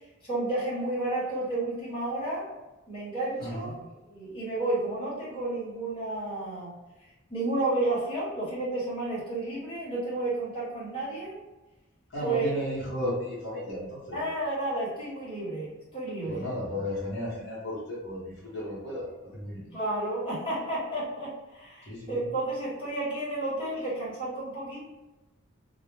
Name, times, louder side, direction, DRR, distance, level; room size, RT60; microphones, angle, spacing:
voice 1, 0.2-2.5 2.9-3.8 4.0-6.7 7.3-11.4 12.2-12.5 14.1-16.4 19.7-24.8, right 2 dB, 25° left, -8 dB, 0.9 m, -31 dB
voice 2, 3.4-3.7 12.1-14.2 16.3-19.7 21.9-22.3, left 1 dB, 60° left, -6 dB, 0.7 m, -34 dB
2.1 x 2.0 x 3.0 m, 1.1 s
head